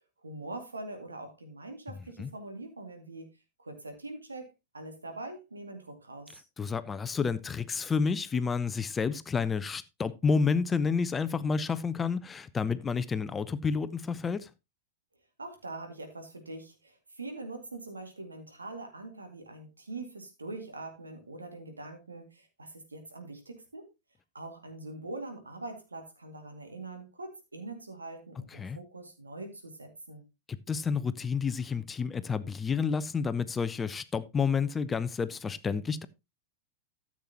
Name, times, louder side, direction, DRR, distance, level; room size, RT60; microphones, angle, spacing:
voice 1, 0.2-3.3 3.6-6.4 15.4-23.9 24.3-30.2, right 2 dB, 80° right, 2.3 m, -43 dB
voice 2, 6.6-14.5 28.5-28.8 30.5-36.1, left 5 dB, 15° left, 0.5 m, -30 dB
13.5 x 7.3 x 2.9 m
figure-of-eight pair, 90°, 0 cm